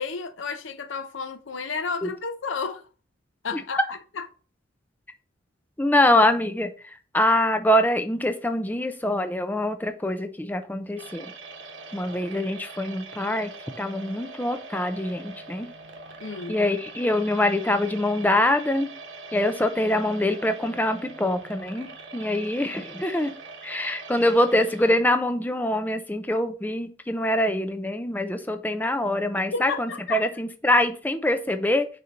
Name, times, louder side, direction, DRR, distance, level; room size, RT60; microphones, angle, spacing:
voice 1, 0.0-2.9 3.4-4.3 16.2-16.6 29.5-30.3, left 5 dB, 80° left, 0.7 m, -32 dB
voice 2, 5.8-6.7 7.1-11.3 11.9-13.5 13.8-15.7 16.5-18.9 19.3-23.3 23.6-31.9, left 1 dB, 10° left, 0.5 m, -24 dB
sound 1, 11.0-25.0, right 3 dB, 75° right, 1.1 m, -42 dB
6.5 x 2.9 x 5.1 m
head